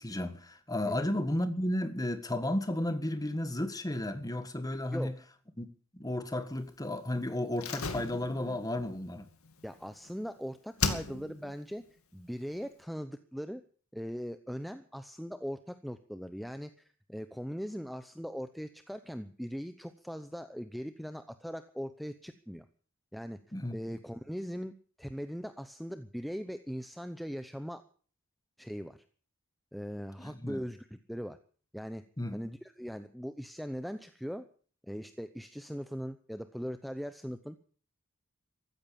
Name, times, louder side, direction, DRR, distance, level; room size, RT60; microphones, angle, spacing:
voice 1, 0.0-5.1 5.6-5.7 5.9-9.3 23.5-23.8 30.2-30.6 32.2-32.4, left 1 dB, 15° left, 1.6 m, -33 dB
voice 2, 4.9-5.2 9.6-11.8 12.1-13.6 13.9-22.6 23.1-23.4 23.7-27.8 28.6-29.0 29.7-31.4 31.7-32.0 32.3-34.5 34.9-37.6, equal, ahead, 0.8 m, -40 dB
Slam, 7.6-10.3 10.8-11.5 11.8-11.9, left 4 dB, 70° left, 2.4 m, -36 dB
15.0 x 13.5 x 7.1 m
head